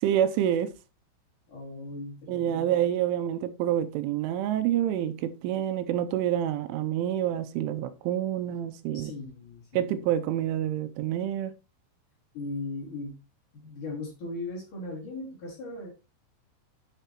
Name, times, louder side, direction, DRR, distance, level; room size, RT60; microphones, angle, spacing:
voice 1, 0.0-0.7 2.3-9.1 9.7-11.5, right 11 dB, 85° right, 3.0 m, -27 dB
voice 2, 1.5-2.7 8.9-10.0 12.3-13.2 13.5-15.9, left 2 dB, 45° left, 3.9 m, -38 dB
10.0 x 8.2 x 3.0 m
omnidirectional pair, 5.7 m